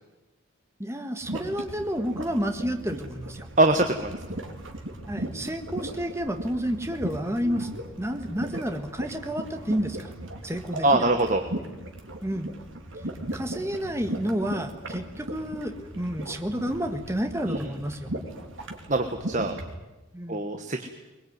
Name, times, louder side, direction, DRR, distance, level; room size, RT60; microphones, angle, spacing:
voice 1, 0.8-3.5 5.1-7.7 8.0-10.1 10.4-11.0 12.2-12.5 13.3-18.1 20.1-20.4, equal, 15° right, 6 dB, 1.6 m, -30 dB
sound 1, 1.2-19.8, right 1 dB, 70° right, 3.3 m, -37 dB
voice 2, 3.6-4.2 10.8-11.4 17.4-17.6 18.9-19.5 20.3-20.9, right 2 dB, 40° right, 6 dB, 1.4 m, -23 dB
21.5 x 21.5 x 9.6 m, 1.1 s
head